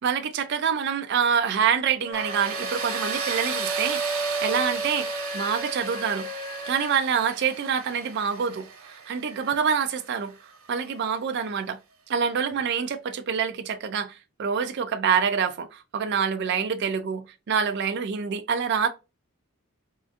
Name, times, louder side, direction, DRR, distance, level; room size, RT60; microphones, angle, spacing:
voice 1, 0.0-6.3 6.7-10.3 10.7-11.8 12.1-18.9, right 7 dB, 55° right, 0.4 m, -26 dB
sound 1, 2.0-7.0, right 2 dB, 15° left, 0.5 m, -33 dB
Tools, 2.1-10.9, right 6 dB, 85° right, 1.0 m, -35 dB
3.7 x 2.4 x 2.4 m
head